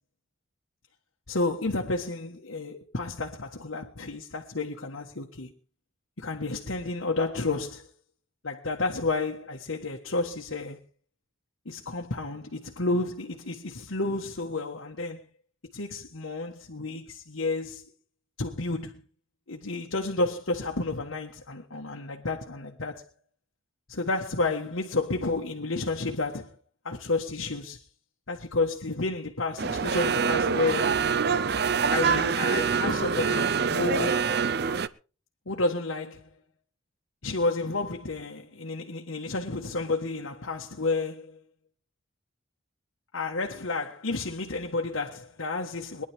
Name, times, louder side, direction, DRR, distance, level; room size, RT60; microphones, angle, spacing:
voice 1, 1.3-5.5 6.2-7.9 8.4-10.8 11.6-15.2 15.7-17.8 18.4-19.0 19.5-23.0 23.9-26.6 26.8-27.8 28.3-30.9 31.9-34.2 35.5-36.3 37.2-41.4 43.1-46.0, left 3 dB, 85° left, 1.5 m, -31 dB
sound 1, 29.6-34.9, right 6 dB, 50° right, 0.6 m, -25 dB
22.5 x 11.0 x 3.6 m
head